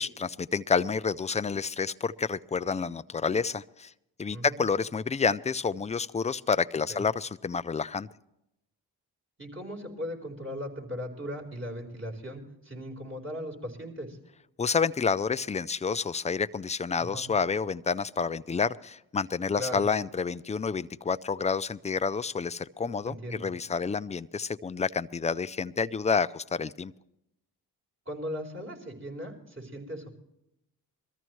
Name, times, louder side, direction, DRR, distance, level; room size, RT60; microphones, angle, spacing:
voice 1, 0.0-3.9 4.2-8.1 14.6-26.9, left 5 dB, 15° left, 14 dB, 0.4 m, -29 dB
voice 2, 9.4-14.2 17.0-17.2 19.5-19.8 23.1-23.5 28.1-30.1, equal, 30° right, 1 dB, 4.3 m, -38 dB
22.0 x 14.0 x 3.1 m, 0.83 s
cardioid pair, 60°, 42 cm